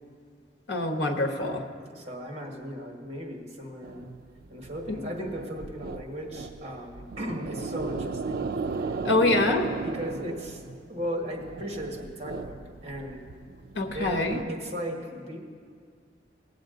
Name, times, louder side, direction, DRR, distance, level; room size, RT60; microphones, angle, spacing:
voice 1, 0.7-1.6 4.9-5.0 9.0-9.7 13.7-14.4, left 2 dB, 75° left, 5 dB, 1.1 m, -25 dB
voice 2, 1.9-4.1 4.5-8.4 8.8-9.0 9.8-10.6 10.9-13.2 13.9-15.4, equal, 35° right, 1 dB, 1.6 m, -36 dB
sound 1, 3.8-14.4, right 4 dB, 55° right, 0.4 m, -36 dB
18.5 x 7.5 x 3.9 m, 2.1 s
head